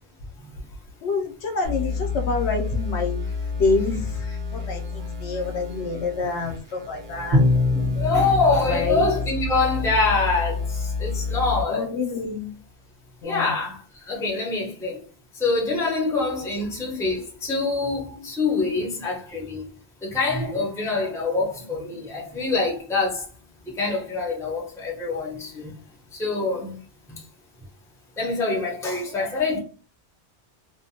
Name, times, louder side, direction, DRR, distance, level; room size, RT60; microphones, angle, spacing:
voice 1, 1.0-3.3 3.5-4.0 4.5-7.4 8.6-9.0 11.7-12.5 13.2-13.6, left 4 dB, 75° left, 0.9 m, -27 dB
sound 1, 1.6-11.6, left 4 dB, 85° right, 1.0 m, -30 dB
Bowed string instrument, 7.3-10.1, left 2 dB, 45° right, 0.9 m, -24 dB
voice 2, 7.7-10.6 11.0-11.9 13.2-13.8 14.1-15.0 15.4-19.6 20.0-23.2 23.7-25.7 26.2-26.8 28.2-29.6, left 3 dB, 5° left, 0.5 m, -25 dB
2.5 x 2.1 x 2.7 m
omnidirectional pair, 1.2 m